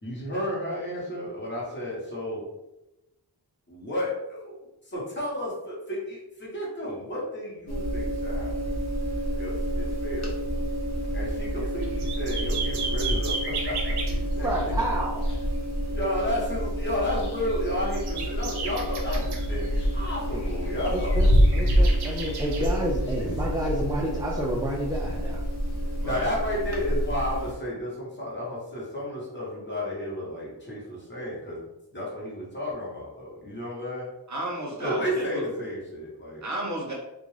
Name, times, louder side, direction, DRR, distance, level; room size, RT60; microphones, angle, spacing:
voice 1, 0.0-2.4 3.7-4.5 4.9-8.7 9.4-10.3 11.1-14.5 15.9-21.1 23.2-23.3 26.0-31.6 31.9-34.1 34.8-36.4, left 1 dB, 30° left, -6 dB, 1.0 m, -32 dB
sound 1, 7.7-27.5, equal, 45° left, 0.5 m, -31 dB
sound 2, 11.0-11.6 11.9-12.0 12.2-16.3 16.8-17.7 17.9-23.8, equal, 85° left, 0.7 m, -27 dB
sound 3, 11.6-14.2 17.1-20.0 20.3-20.6 21.0-22.8 24.2-24.3, right 4 dB, 75° right, 0.6 m, -35 dB
voice 2, 14.4-15.3 20.9-21.3 21.5-25.4, right 1 dB, 10° right, -4 dB, 0.3 m, -29 dB
voice 3, 34.3-35.6 36.4-36.9, right 1 dB, 45° right, -3 dB, 0.8 m, -33 dB
2.4 x 2.2 x 3.1 m, 0.96 s
wide cardioid pair, 105°, 40 cm